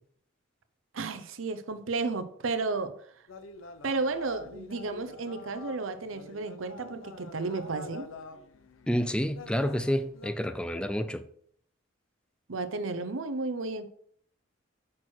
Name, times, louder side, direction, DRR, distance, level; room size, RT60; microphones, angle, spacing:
voice 1, 0.9-3.0 3.8-8.1 12.5-13.9, right 3 dB, 85° right, 0.7 m, -33 dB
sound 1, 3.3-10.3, left 3 dB, 85° left, 0.7 m, -47 dB
voice 2, 8.9-11.2, equal, 5° left, 0.4 m, -29 dB
6.1 x 6.1 x 4.5 m
head